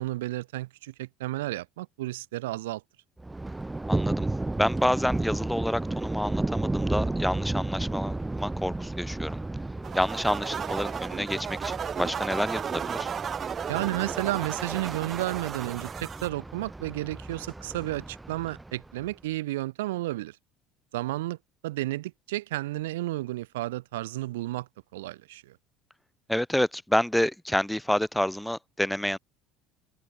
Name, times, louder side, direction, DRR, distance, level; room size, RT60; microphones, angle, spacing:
voice 1, 0.0-2.8 13.7-20.4 20.9-21.4 21.6-25.6, right 17 dB, 85° right, 2.3 m, -32 dB
Thunder, 3.2-19.1, right 2 dB, 10° right, 6.6 m, -33 dB
voice 2, 3.9-4.3 4.6-9.4 9.9-13.1 26.3-29.2, left 1 dB, 5° left, 5.1 m, -28 dB
sound 1, 9.8-16.3, right 7 dB, 40° right, 2.9 m, -34 dB
hypercardioid pair, 75°, 0 cm